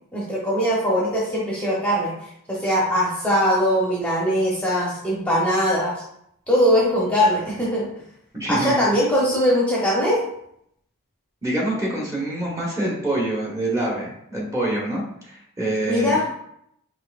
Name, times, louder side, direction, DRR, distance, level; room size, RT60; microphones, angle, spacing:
voice 1, 0.1-2.1 2.5-6.0 6.5-7.9 8.5-10.2 15.9-16.2, equal, 5° left, -6 dB, 0.9 m, -21 dB
voice 2, 8.3-8.8 11.4-16.2, right 1 dB, 15° right, -4 dB, 1.1 m, -26 dB
5.6 x 3.0 x 2.4 m, 0.73 s
head